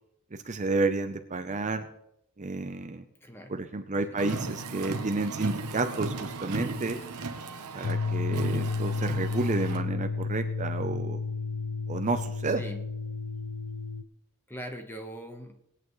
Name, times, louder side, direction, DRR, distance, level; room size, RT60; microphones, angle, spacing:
voice 1, 0.4-1.9 2.4-3.0 3.5-7.0 7.7-11.2 11.9-12.6, right 3 dB, 35° right, 7 dB, 0.6 m, -30 dB
voice 2, 3.2-3.6 4.1-4.3 12.5-12.8 14.5-15.6, equal, 10° left, 5 dB, 1.1 m, -42 dB
Car, 4.2-9.8, right 3 dB, 90° right, 1.0 m, -36 dB
sound 1, 7.8-14.0, left 4 dB, 65° left, 0.5 m, -32 dB
20.0 x 8.8 x 3.2 m, 0.78 s
head